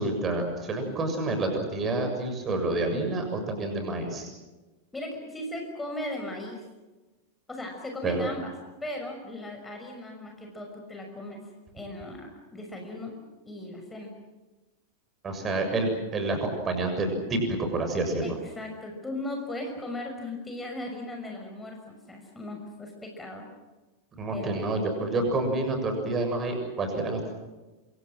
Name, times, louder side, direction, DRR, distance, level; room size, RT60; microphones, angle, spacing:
voice 1, 0.0-4.3 8.0-8.3 15.2-18.2 24.2-27.3, right 2 dB, 25° right, 5 dB, 7.2 m, -28 dB
voice 2, 4.9-6.6 7.5-8.5 8.8-11.4 11.7-13.1 13.5-14.1 18.2-23.4 24.3-24.6, left 1 dB, 10° left, 2 dB, 6.2 m, -37 dB
27.5 x 26.5 x 6.4 m, 1.2 s
figure-of-eight pair, 90°, 0 cm